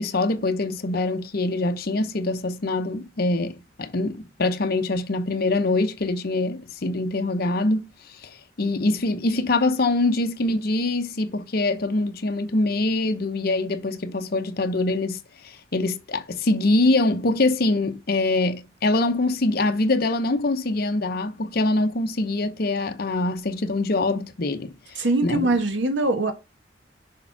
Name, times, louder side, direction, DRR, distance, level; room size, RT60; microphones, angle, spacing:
voice 1, 0.0-7.9 8.2-8.3 8.6-25.5, left 2 dB, 55° left, 0.7 m, -24 dB
voice 2, 25.0-26.3, right 2 dB, 75° right, 1.5 m, -22 dB
6.6 x 3.6 x 5.9 m
head